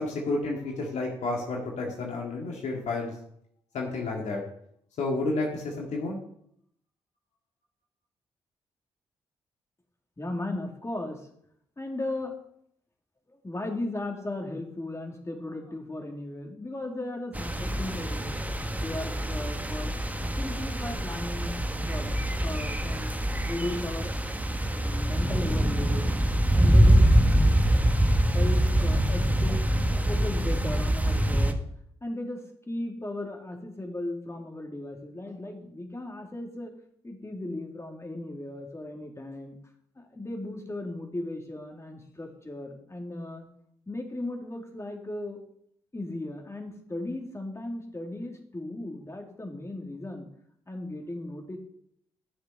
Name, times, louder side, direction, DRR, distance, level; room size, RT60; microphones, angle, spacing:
voice 1, 0.0-3.2 3.7-4.4 5.0-6.2, left 2 dB, 65° left, -1 dB, 2.2 m, -31 dB
voice 2, 10.2-11.3 11.8-12.3 13.3-19.9 20.4-21.5 21.9-22.1 22.4-23.1 23.4-24.1 24.7-26.1 26.5-27.0 27.3-27.6 28.3-31.6 32.0-36.7 37.0-39.6 40.0-43.5 43.9-45.4 45.9-50.3 50.7-51.6, left 1 dB, 20° left, 2 dB, 3.2 m, -36 dB
sound 1, 17.3-31.5, right 1 dB, 10° right, 1.5 m, -24 dB
12.5 x 6.9 x 5.4 m, 0.70 s
hypercardioid pair, 40°, 13 cm